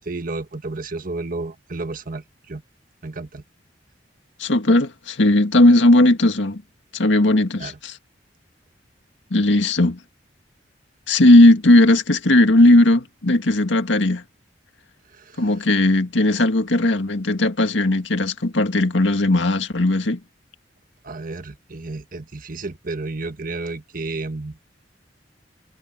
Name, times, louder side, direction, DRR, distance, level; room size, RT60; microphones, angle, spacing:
voice 1, 0.0-2.6 3.0-3.4 7.6-7.8 15.1-15.4 21.0-24.6, right 3 dB, 50° right, 1.3 m, -32 dB
voice 2, 4.4-6.6 6.9-8.0 9.3-10.0 11.1-14.2 15.4-20.2, left 1 dB, 85° left, 1.9 m, -17 dB
head